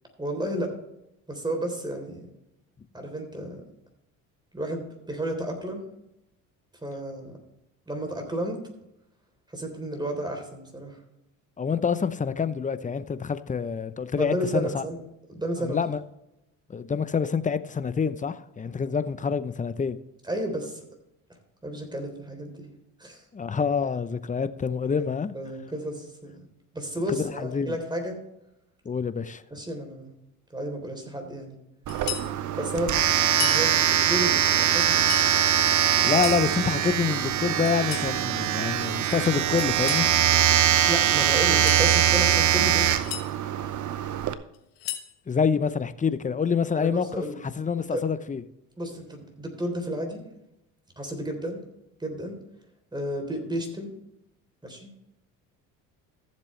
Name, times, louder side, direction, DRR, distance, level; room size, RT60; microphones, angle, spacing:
voice 1, 0.2-0.7 1.3-2.3 2.9-3.6 4.5-5.8 6.8-7.4 7.9-8.6 9.5-11.0 14.2-15.0 15.3-15.8 20.2-20.8 21.6-22.7 23.0-23.2 25.3-26.4 26.7-28.2 29.5-30.2 30.5-31.6 32.6-33.0 33.4-35.0 40.9-42.9 46.7-47.4 47.9-48.0 48.8-50.2 51.0-51.6 52.0-52.4 52.9-53.9 54.6-55.0, right 1 dB, 10° right, 3.5 m, -32 dB
voice 2, 11.6-14.8 15.6-16.0 16.7-20.0 23.3-25.3 27.1-27.8 28.8-29.4 35.7-40.1 45.3-48.4, left 6 dB, 20° left, 0.7 m, -27 dB
sound 1, 31.9-32.3 33.3-33.6 34.8-35.3 36.0-36.5 37.6-38.1 39.6-40.1 41.4-41.9 42.7-43.3 44.5-45.1, left 13 dB, 90° left, 1.4 m, -35 dB
Domestic sounds home sounds, 31.9-44.3, right 11 dB, 50° right, 0.9 m, -23 dB
15.0 x 7.5 x 3.3 m
supercardioid pair, 85°, 38 cm